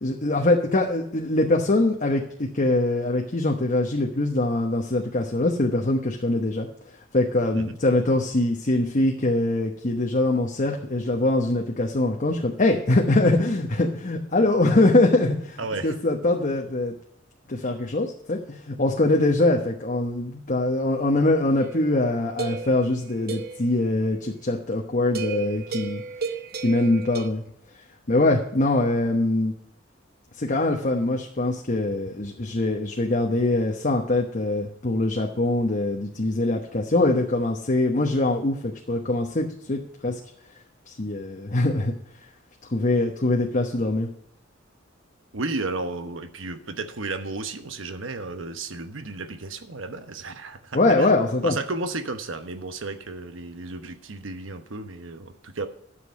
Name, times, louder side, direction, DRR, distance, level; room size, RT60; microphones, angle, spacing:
voice 1, 0.0-6.7 7.1-16.9 17.5-26.0 26.6-27.4 28.1-29.5 30.4-40.2 40.9-41.9 42.7-44.1 50.7-51.5, left 2 dB, 40° left, 1 dB, 1.1 m, -23 dB
voice 2, 15.6-16.0 45.3-55.7, right 3 dB, 75° right, 9 dB, 1.0 m, -33 dB
sound 1, 21.6-23.7 25.1-27.3, right 4 dB, 50° right, 0.9 m, -34 dB
11.5 x 6.9 x 5.3 m, 0.73 s
head